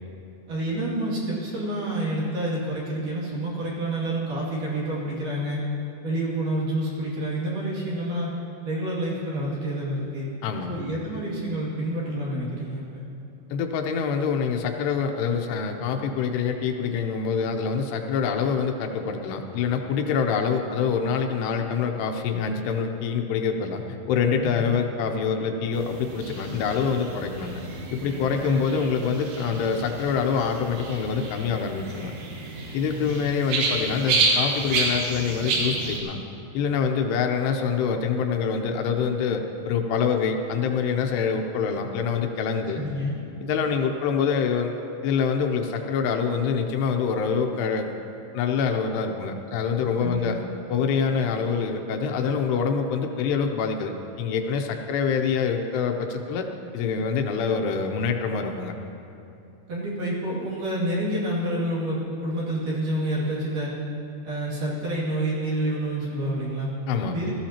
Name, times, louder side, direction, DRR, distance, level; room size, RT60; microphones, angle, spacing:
voice 1, 0.5-5.6 6.0-8.3 8.6-10.3 10.7-13.0 24.4-24.7 28.4-28.8 33.0-33.2 42.8-43.2 50.0-50.6 59.7-63.7 64.2-66.7 67.1-67.3, right 1 dB, 55° right, -6 dB, 3.7 m, -28 dB
voice 2, 10.4-10.8 13.5-27.6 27.9-32.1 32.7-36.2 36.5-42.8 43.4-44.7 45.0-47.9 48.3-50.4 50.7-56.5 56.7-58.7 66.9-67.2, left 6 dB, 80° left, 4 dB, 2.8 m, -25 dB
sound 1, 25.7-36.0, right 3 dB, 75° right, 3.6 m, -30 dB
19.5 x 13.5 x 2.9 m, 2.8 s
omnidirectional pair, 4.9 m